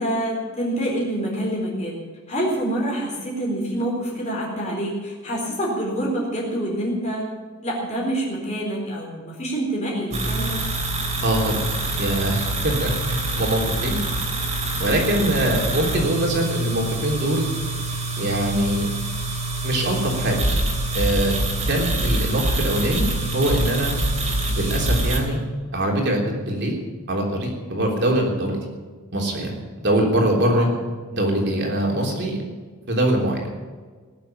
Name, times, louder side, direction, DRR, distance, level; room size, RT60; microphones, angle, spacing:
voice 1, 0.0-2.0 2.3-7.2 7.6-10.6 15.0-15.2 27.8-27.9 30.6-30.8, right 1 dB, 30° left, -3 dB, 4.2 m, -26 dB
sound 1, 10.1-25.2, right 2 dB, 30° right, 3.3 m, -25 dB
voice 2, 11.2-11.7 12.0-14.0 14.8-17.5 18.2-18.9 19.6-20.4 20.9-21.4 21.7-23.1 23.3-23.9 24.6-25.4 25.7-26.7 27.1-28.6 29.1-30.7 31.1-32.4 32.9-33.4, right 1 dB, 50° right, 0 dB, 3.5 m, -23 dB
19.0 x 7.5 x 9.0 m, 1.4 s
head